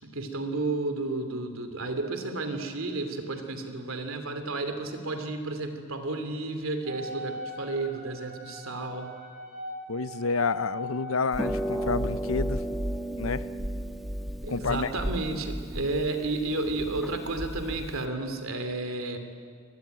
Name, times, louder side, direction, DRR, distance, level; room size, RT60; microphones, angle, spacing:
voice 1, 0.0-9.2 14.4-19.2, right 2 dB, 85° right, 7 dB, 2.8 m, -32 dB
Wind instrument woodwind instrument, 6.8-11.9, left 1 dB, 40° right, 3.1 m, -41 dB
voice 2, 9.9-12.6 13.2-13.5 14.5-14.9, left 4 dB, 85° left, 15 dB, 0.8 m, -29 dB
Harp, 11.3-18.1, right 1 dB, ahead, 1.6 m, -33 dB
24.5 x 20.0 x 9.3 m, 2.1 s
head